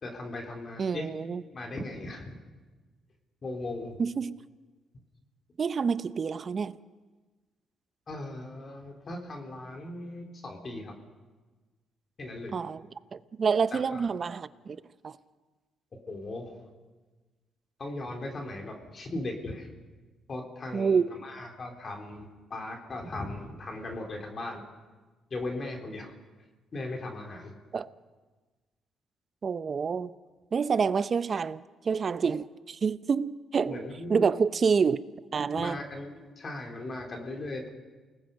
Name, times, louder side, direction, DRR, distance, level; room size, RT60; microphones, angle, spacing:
voice 1, 0.0-1.1 1.5-2.4 3.4-4.0 8.1-10.9 12.2-12.6 13.7-14.1 16.1-16.5 17.8-19.7 20.3-24.6 25.3-26.1 26.7-27.5 33.7-34.2 35.5-37.7, left 2 dB, 40° left, 3.6 m, -38 dB
voice 2, 0.8-1.4 4.0-4.4 5.6-6.7 12.5-12.8 13.1-14.8 15.0-15.2 20.7-21.1 27.7-27.9 29.4-30.1 30.5-35.0 35.3-35.8, right 5 dB, 45° right, 0.7 m, -28 dB
29.0 x 19.5 x 5.4 m
cardioid pair, 90°, 0 cm